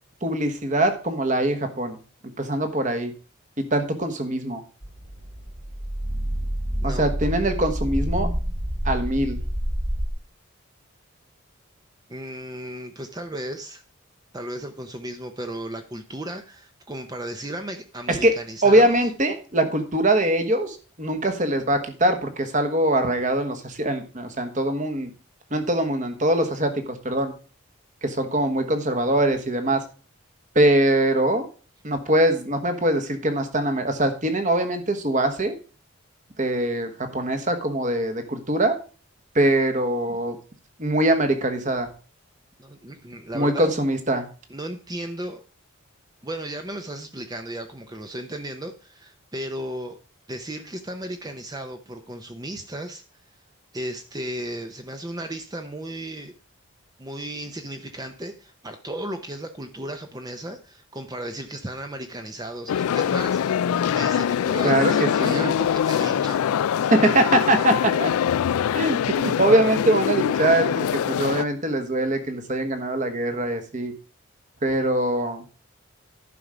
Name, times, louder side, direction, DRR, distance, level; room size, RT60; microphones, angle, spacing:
voice 1, 0.2-2.0 2.4-3.1 3.6-4.6 6.8-8.3 8.8-9.4 18.1-18.4 18.6-25.1 25.5-27.3 28.0-29.8 30.5-31.5 31.8-35.6 36.4-38.8 39.3-40.4 40.8-41.9 43.3-44.3 64.6-64.9 65.2-65.5 66.9-68.1 68.7-73.9 74.6-75.4, right 1 dB, 35° right, 7 dB, 1.3 m, -22 dB
sound 1, 4.8-10.1, equal, 55° right, 4.1 m, -28 dB
voice 2, 12.1-13.8 14.3-19.0 42.6-43.7 44.5-45.4 46.2-50.0 50.3-53.0 53.7-56.3 57.0-63.5 63.9-66.5, right 1 dB, 20° right, 6 dB, 0.7 m, -35 dB
sound 2, 62.7-71.4, left 8 dB, 90° left, 0.3 m, -23 dB
11.0 x 5.5 x 5.0 m, 0.37 s
head